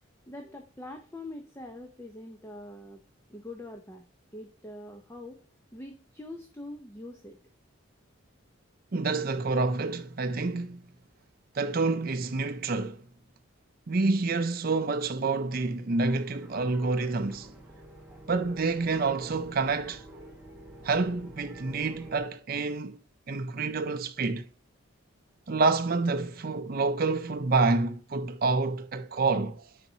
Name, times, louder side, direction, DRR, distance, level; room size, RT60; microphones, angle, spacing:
voice 1, 0.3-3.0 3.3-4.0 4.3-5.4 5.7-7.4, left 1 dB, 15° left, 0.7 m, -43 dB
voice 2, 8.9-10.8 11.5-13.0 13.9-17.5 18.3-20.0 20.8-23.0 23.3-24.5 25.5-29.6, right 3 dB, 45° right, 0.5 m, -28 dB
sound 1, 16.0-22.2, right 2 dB, 5° right, 1.1 m, -48 dB
9.8 x 4.1 x 2.7 m
head